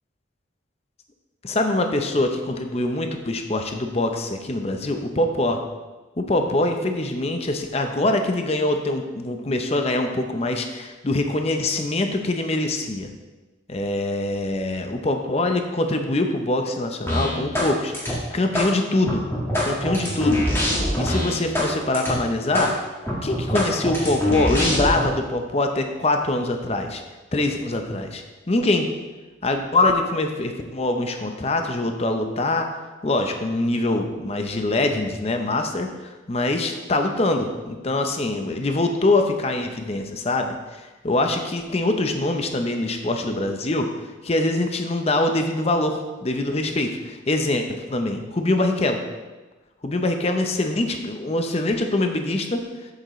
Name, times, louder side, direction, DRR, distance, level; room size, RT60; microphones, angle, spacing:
voice 1, 1.4-5.6 6.2-13.1 13.7-19.3 19.6-20.5 20.9-22.7 23.2-27.0 27.3-28.9 29.4-32.7 33.0-40.6 41.0-43.9 44.2-49.0 49.8-52.6, left 2 dB, 35° left, 5 dB, 0.7 m, -24 dB
sound 1, 17.1-17.7 17.9-18.7 19.1-21.7 21.9-22.1 22.5-22.7 23.1-25.0, left 1 dB, 15° left, 1.7 m, -23 dB
8.0 x 7.9 x 3.1 m, 1.2 s
head